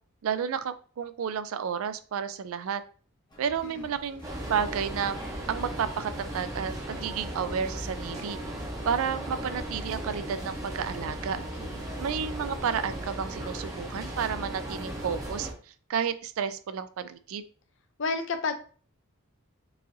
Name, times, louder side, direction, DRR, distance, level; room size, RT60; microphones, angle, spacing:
voice 1, 0.2-2.8 3.4-5.2 5.5-8.4 8.8-11.4 12.0-15.5 15.9-17.4, right 7 dB, 70° right, 13 dB, 0.3 m, -31 dB
sound 1, 3.3-13.7, left 1 dB, 20° left, 0.7 m, -51 dB
sound 2, 4.2-15.5, right 1 dB, 15° right, 0.7 m, -36 dB
voice 2, 11.3-11.8 18.0-18.5, left 4 dB, 55° left, 9 dB, 0.5 m, -32 dB
4.7 x 2.6 x 2.7 m, 0.41 s
head